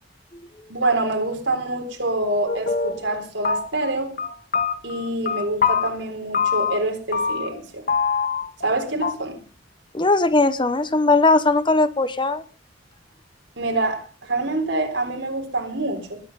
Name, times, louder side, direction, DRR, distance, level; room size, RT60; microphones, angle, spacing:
voice 1, 0.7-4.1 4.8-7.8 8.6-9.4 13.6-16.2, right 2 dB, 75° right, 4.0 m, -26 dB
sound 1, 2.5-3.2 3.4-3.9 4.2-5.9 6.3-6.9 7.1-7.6 7.9-8.7 9.0-9.1, left 6 dB, 50° left, 1.7 m, -24 dB
voice 2, 9.9-12.4, left 3 dB, 25° left, 0.9 m, -19 dB
20.0 x 8.6 x 5.5 m
head